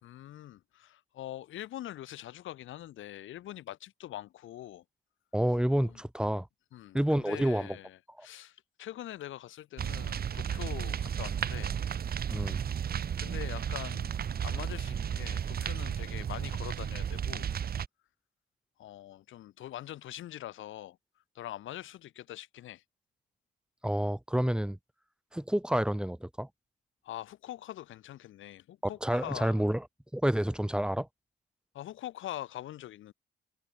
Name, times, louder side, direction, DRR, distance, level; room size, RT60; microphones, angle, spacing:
voice 1, 0.0-4.8 5.7-6.0 6.7-11.8 12.9-14.1 14.4-17.5 18.8-21.0 21.3-22.8 27.0-29.6 31.7-33.1, left 13 dB, 80° left, 3.2 m, -43 dB
voice 2, 5.3-6.5 6.9-7.8 8.2-8.3 12.3-12.6 23.8-24.8 25.3-26.5 29.0-29.8 30.1-31.1, right 1 dB, 5° right, 3.2 m, -29 dB
sound 1, 9.8-17.9, right 8 dB, 50° right, 1.5 m, -33 dB
cardioid pair, 90°, 20 cm